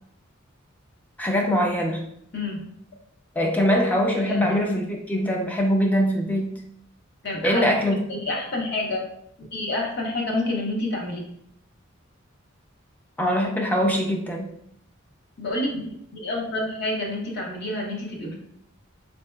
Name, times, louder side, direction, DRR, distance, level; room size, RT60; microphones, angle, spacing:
voice 1, 1.2-2.0 3.4-6.6 7.4-8.1 13.2-14.5, equal, 10° left, 1 dB, 0.4 m, -23 dB
voice 2, 2.3-2.6 4.2-4.6 7.2-7.6 8.1-9.0 9.5-11.2 15.4-18.3, left 2 dB, 55° left, -1 dB, 0.8 m, -28 dB
4.5 x 2.7 x 2.2 m, 0.70 s
head